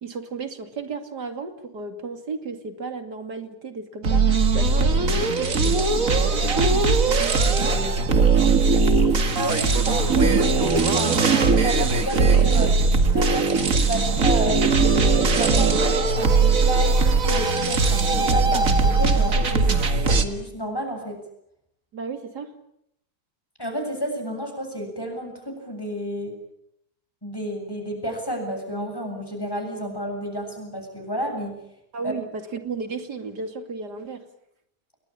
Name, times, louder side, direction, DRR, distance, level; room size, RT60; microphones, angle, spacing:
voice 1, 0.0-7.0 7.5-8.6 21.9-22.5 31.9-34.2, right 4 dB, 80° right, 8 dB, 3.2 m, -34 dB
sound 1, 4.0-20.2, right 4 dB, 55° right, 2.3 m, -19 dB
voice 2, 9.4-10.4 10.6-12.8 13.1-14.6 15.1-21.2 23.6-26.4 27.2-31.6 32.0-32.1, equal, 15° left, 3 dB, 7.6 m, -31 dB
28.5 x 21.5 x 8.8 m, 0.75 s
omnidirectional pair, 1.7 m